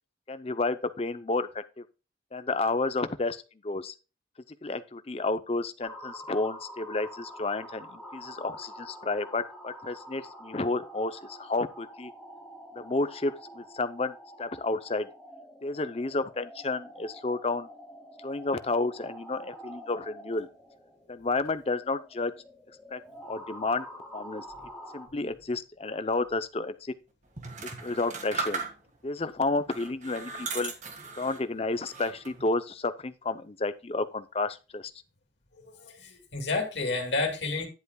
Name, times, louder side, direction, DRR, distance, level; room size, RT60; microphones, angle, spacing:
voice 1, 0.3-1.8 2.3-3.9 4.6-12.1 12.7-15.1 15.6-17.7 18.2-20.5 21.1-22.3 22.9-23.9 24.1-24.5 24.9-26.9 27.8-28.7 29.0-30.7 31.1-34.9, left 3 dB, 35° left, 0.6 m, -31 dB
sound 1, 5.8-25.1, equal, ahead, 2.7 m, -47 dB
sound 2, 27.4-29.1 29.7-31.5 31.9-32.5, right 4 dB, 40° right, 1.7 m, -37 dB
voice 2, 35.8-37.7, left 3 dB, 75° left, 2.1 m, -30 dB
10.5 x 8.1 x 2.3 m
head